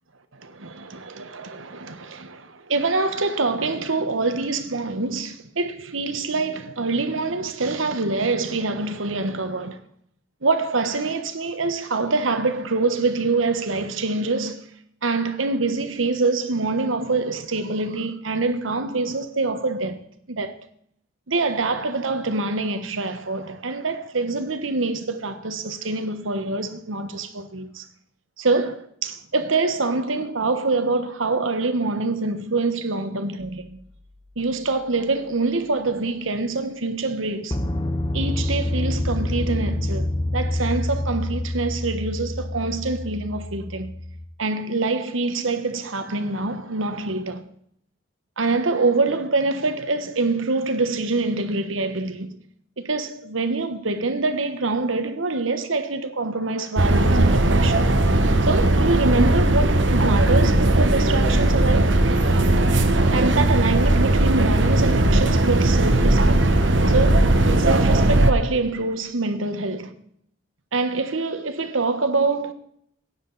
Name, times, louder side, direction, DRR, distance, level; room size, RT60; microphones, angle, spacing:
voice 1, 0.3-9.8 10.4-14.6 15.0-20.0 20.3-20.6 21.3-27.8 28.4-33.7 34.4-37.6 38.1-43.9 44.4-47.4 48.4-52.3 52.8-57.9 58.4-61.9 63.1-66.4 66.9-67.3 67.6-69.9 70.7-72.5, right 3 dB, 85° right, 1.3 m, -25 dB
sound 1, 33.4-33.6 37.5-44.3, left 1 dB, 25° left, 0.8 m, -27 dB
sound 2, 56.8-68.3, right 1 dB, 65° right, 1.2 m, -18 dB
16.0 x 9.7 x 4.1 m
head